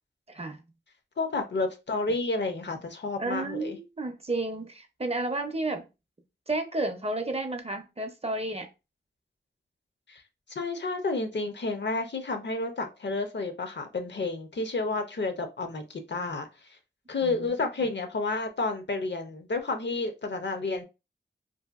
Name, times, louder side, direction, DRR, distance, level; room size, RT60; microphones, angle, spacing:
voice 1, 0.3-0.6 3.2-5.9 6.5-8.7 17.2-17.7, right 2 dB, 30° right, 0.5 m, -32 dB
voice 2, 1.2-3.8 10.1-10.2 10.5-16.8 17.1-20.8, left 3 dB, 60° left, 0.5 m, -31 dB
2.7 x 2.5 x 2.3 m
wide cardioid pair, 70°, 20 cm